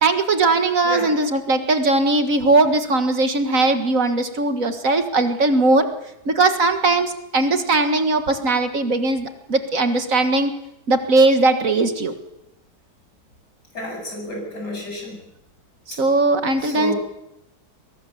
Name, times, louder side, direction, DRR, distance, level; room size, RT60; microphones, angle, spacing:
voice 1, 0.0-5.9 6.3-10.5 10.9-12.1 16.0-16.9, right 2 dB, 55° right, 7 dB, 2.0 m, -19 dB
voice 2, 13.7-15.2 16.6-17.0, left 1 dB, 80° left, 1 dB, 8.5 m, -30 dB
22.0 x 18.5 x 7.2 m, 0.86 s
omnidirectional pair, 1.8 m